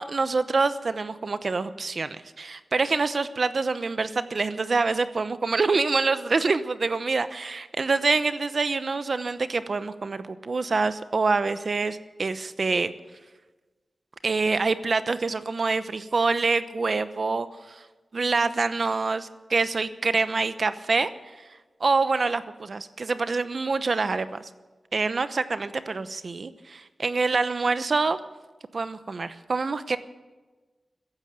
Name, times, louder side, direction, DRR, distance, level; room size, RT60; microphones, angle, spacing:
voice 1, 0.0-12.9 14.2-17.8 18.1-21.1 21.8-24.5 24.9-28.2 28.7-30.0, right 4 dB, 55° right, 12 dB, 0.9 m, -26 dB
14.5 x 11.0 x 8.8 m, 1.2 s
wide cardioid pair, 95°, 0 cm